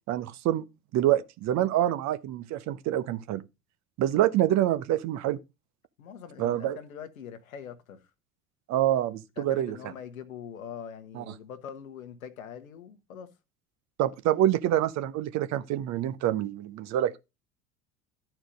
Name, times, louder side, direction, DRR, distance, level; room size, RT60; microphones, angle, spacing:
voice 1, 0.1-0.6 0.9-3.4 4.0-5.4 6.4-6.8 8.7-9.8 11.1-11.2 14.0-17.2, right 12 dB, 40° right, 0.8 m, -26 dB
voice 2, 6.0-8.0 9.4-13.3, left 8 dB, 75° left, 1.3 m, -43 dB
12.5 x 4.5 x 5.2 m
figure-of-eight pair, 70°, 42 cm